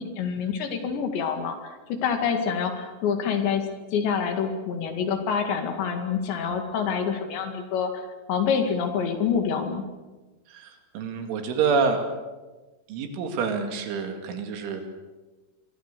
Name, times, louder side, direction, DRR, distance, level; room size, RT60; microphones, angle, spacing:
voice 1, 0.0-9.9, left 6 dB, 65° left, 6 dB, 4.0 m, -27 dB
voice 2, 10.5-12.0 12.9-14.8, right 5 dB, 70° right, 5 dB, 4.6 m, -27 dB
26.0 x 23.0 x 6.8 m, 1.2 s
omnidirectional pair, 5.9 m